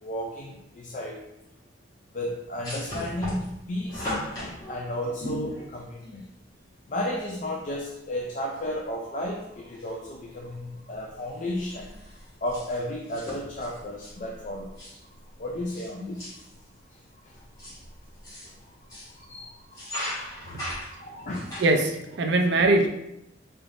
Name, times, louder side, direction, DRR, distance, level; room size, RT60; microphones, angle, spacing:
voice 1, 0.0-1.2 2.1-4.1 4.7-6.2 6.9-11.9 12.4-16.4 16.9-17.0 17.2-17.5 18.4-18.6 18.9-21.6, left 1 dB, 40° left, 0 dB, 0.4 m, -34 dB
sound 1, 2.6-6.2 7.4-7.5 7.7-7.8 8.5-8.9 9.2-10.1 10.4-10.7 10.9-15.9 16.2-16.6 17.3-19.2 19.6-21.8, equal, 20° left, 1.5 m, -38 dB
voice 2, 21.6-22.9, right 2 dB, 60° right, 5 dB, 0.4 m, -21 dB
3.8 x 3.4 x 2.5 m, 0.84 s
head